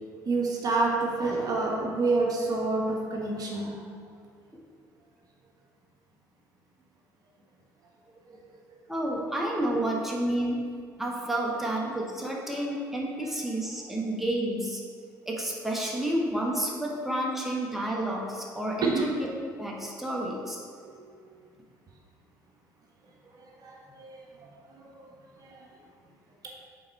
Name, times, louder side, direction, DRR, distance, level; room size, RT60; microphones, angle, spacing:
voice 1, 0.2-3.8 8.3-8.4 18.8-19.1 20.9-21.3 23.3-24.2 24.7-25.1 25.4-25.7, right 3 dB, 40° right, -1 dB, 1.1 m, -29 dB
voice 2, 8.9-10.6 11.0-14.8 15.3-19.1 19.6-20.6, right 1 dB, 5° right, -2 dB, 1.0 m, -30 dB
5.6 x 4.1 x 4.4 m, 2.1 s
hypercardioid pair, 60°, 9 cm